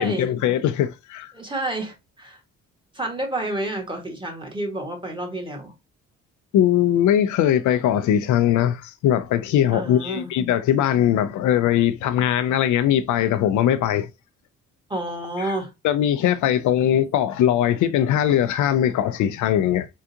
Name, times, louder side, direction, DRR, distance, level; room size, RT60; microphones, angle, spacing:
voice 1, 0.0-1.3 6.5-14.1 15.4-15.5 15.8-19.9, left 10 dB, 75° left, 0.5 m, -20 dB
voice 2, 1.3-2.4 2.9-5.7 9.7-10.3 14.9-15.7, right 1 dB, 15° right, 1.2 m, -29 dB
3.6 x 2.4 x 2.7 m
cardioid pair, 90°, 30 cm